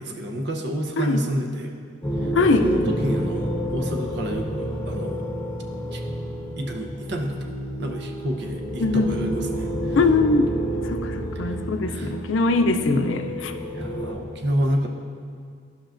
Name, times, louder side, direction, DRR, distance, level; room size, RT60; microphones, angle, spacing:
voice 1, 0.0-1.7 2.2-2.3 2.6-5.2 5.9-6.0 6.6-7.4 7.8-10.0 11.9-12.1 13.7-14.9, equal, 60° right, 2 dB, 0.8 m, -29 dB
sound 1, 2.0-14.1, right 1 dB, 10° left, 1.1 m, -29 dB
voice 2, 2.4-2.7 8.8-9.1 10.0-10.5 10.9-13.5, left 3 dB, 80° left, 6 dB, 0.5 m, -21 dB
12.5 x 5.7 x 2.6 m, 2.2 s
head